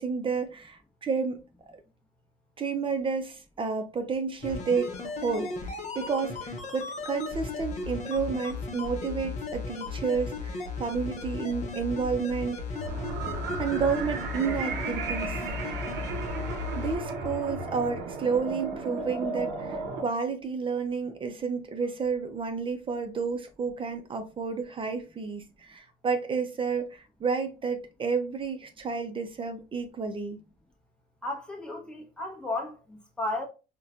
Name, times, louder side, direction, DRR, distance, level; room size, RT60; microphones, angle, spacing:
voice 1, 0.0-1.4 2.6-12.6 13.6-15.4 16.4-30.4, right 5 dB, 30° right, 0.5 m, -31 dB
sound 1, 4.4-17.0 17.2-17.3, left 4 dB, 45° left, 0.8 m, -36 dB
sound 2, 12.7-20.0, right 3 dB, 85° right, 0.7 m, -34 dB
voice 2, 31.2-33.5, left 2 dB, 5° left, 0.9 m, -34 dB
4.1 x 2.2 x 2.4 m
cardioid pair, 110°, 17 cm